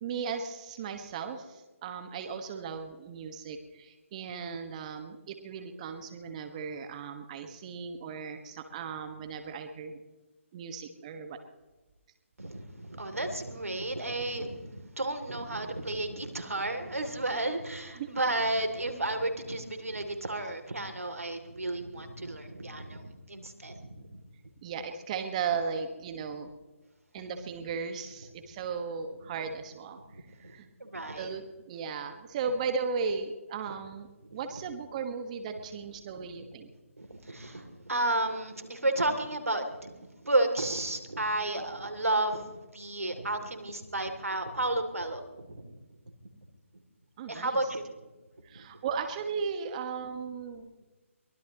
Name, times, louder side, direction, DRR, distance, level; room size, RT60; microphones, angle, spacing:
voice 1, 0.0-10.0 10.5-11.4 18.0-18.1 24.6-26.5 27.1-30.0 30.4-30.7 31.2-36.7 47.2-47.6 48.4-50.7, right 5 dB, 30° right, 7 dB, 1.5 m, -36 dB
voice 2, 12.4-24.1 30.1-31.4 34.2-34.4 36.4-36.6 37.0-40.0 40.2-45.6 47.3-47.8 48.5-48.6, right 2 dB, 85° right, 6 dB, 2.8 m, -32 dB
23.5 x 19.0 x 3.0 m, 1.2 s
figure-of-eight pair, 150°, 7 cm